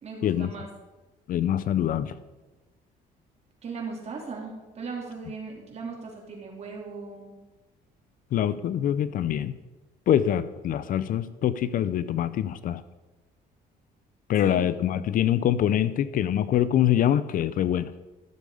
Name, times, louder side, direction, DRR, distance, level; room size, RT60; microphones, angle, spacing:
voice 1, 0.0-0.7 3.6-7.3 14.4-14.7, right 4 dB, 40° right, 0 dB, 3.2 m, -38 dB
voice 2, 1.3-2.1 8.3-9.5 10.1-12.8 14.3-17.9, left 10 dB, 55° left, 15 dB, 0.5 m, -24 dB
13.5 x 6.9 x 4.9 m, 1.1 s
cardioid pair, 110°, 17 cm